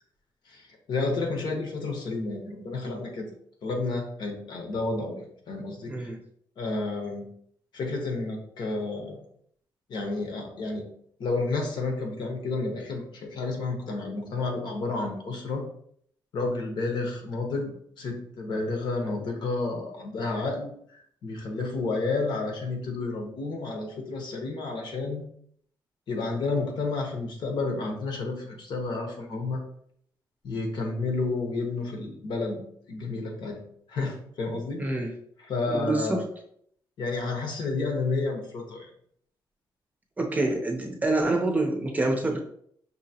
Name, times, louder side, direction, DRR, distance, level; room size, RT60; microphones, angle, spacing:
voice 1, 0.5-3.3 3.6-6.1 6.6-7.3 7.7-9.2 9.9-10.9 11.2-15.6 16.3-17.7 18.0-25.2 26.1-29.6 30.4-33.6 33.9-35.1 35.4-36.3 37.0-38.9, left 3 dB, 65° left, 2 dB, 1.0 m, -31 dB
voice 2, 5.9-6.2 34.8-35.1 35.7-36.2 40.2-42.4, right 2 dB, 20° right, 2 dB, 0.6 m, -26 dB
5.4 x 2.8 x 2.8 m, 0.65 s
wide cardioid pair, 145°, 8 cm